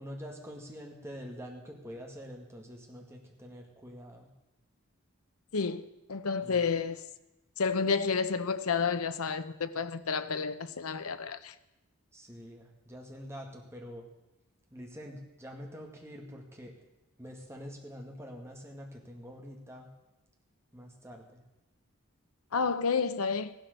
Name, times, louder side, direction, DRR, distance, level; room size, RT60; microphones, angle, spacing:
voice 1, 0.0-4.3 6.4-6.6 12.1-14.1 14.7-16.7 17.2-19.9 20.7-21.4, equal, 10° right, 2.1 m, -46 dB
voice 2, 5.5-7.0 7.6-11.5 22.5-23.5, left 5 dB, 85° left, 0.8 m, -30 dB
15.0 x 12.0 x 6.8 m
head